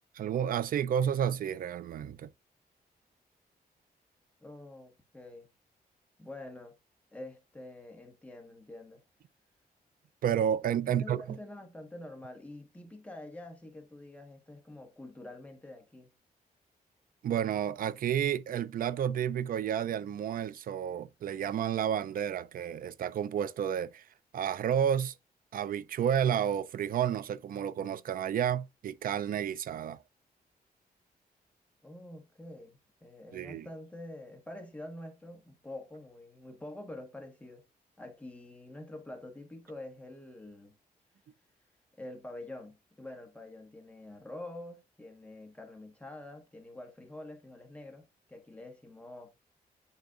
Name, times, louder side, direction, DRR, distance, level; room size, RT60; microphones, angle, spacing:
voice 1, 0.1-2.3 10.2-11.4 17.2-24.0 24.3-25.1 25.5-30.0 33.3-33.7, right 9 dB, 65° right, 0.4 m, -31 dB
voice 2, 4.4-5.5 6.2-6.8 7.1-9.0 10.7-16.1 31.8-37.6 38.0-40.8 42.0-49.3, left 1 dB, 10° left, 1.4 m, -46 dB
9.4 x 4.0 x 2.5 m
wide cardioid pair, 150°, 16 cm